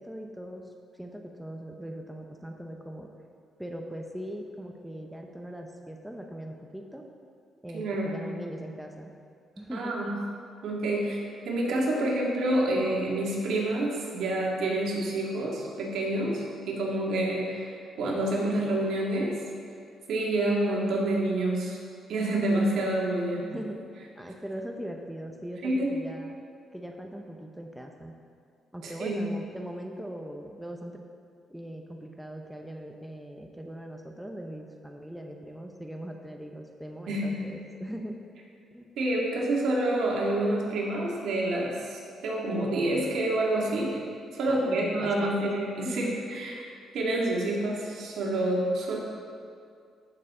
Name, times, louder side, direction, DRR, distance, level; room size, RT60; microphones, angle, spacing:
voice 1, 0.0-3.1 3.6-7.1 7.6-9.1 9.6-9.9 23.4-26.4 26.7-28.2 28.7-31.0 31.5-38.2 38.7-38.9 44.5-45.5 45.8-46.1, equal, 5° right, 2 dB, 0.8 m, -40 dB
voice 2, 7.7-8.1 9.7-10.1 10.6-19.4 20.1-21.8 22.1-23.5 25.6-25.9 28.8-29.2 37.1-37.4 39.0-44.0 44.3-46.6 46.9-49.0, right 1 dB, 75° right, -3 dB, 2.2 m, -28 dB
14.0 x 6.5 x 3.8 m, 2.3 s
cardioid pair, 90°, 0 cm